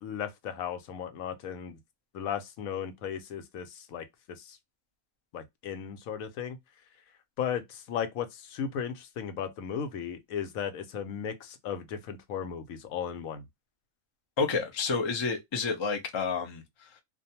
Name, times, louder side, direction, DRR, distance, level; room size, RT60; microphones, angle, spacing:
voice 1, 0.0-1.8 2.1-4.0 4.4-4.6 5.3-6.6 7.4-13.4, left 8 dB, 90° left, 1.1 m, -36 dB
voice 2, 14.4-17.0, left 4 dB, 45° left, 0.3 m, -30 dB
2.5 x 2.2 x 2.7 m
omnidirectional pair, 1.4 m